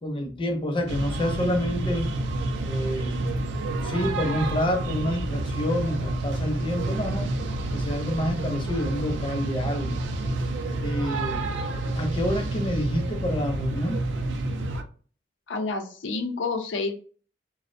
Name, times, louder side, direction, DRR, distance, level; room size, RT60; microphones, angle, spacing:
voice 1, 0.0-2.1 2.6-3.3 3.8-7.3 7.7-10.0 10.8-11.4 11.9-14.0, equal, 30° left, 3 dB, 0.5 m, -28 dB
sound 1, 0.9-14.8, right 2 dB, 80° right, 0.4 m, -29 dB
voice 2, 15.5-16.9, left 3 dB, 90° left, 4 dB, 0.5 m, -29 dB
2.5 x 2.0 x 2.5 m, 0.41 s
head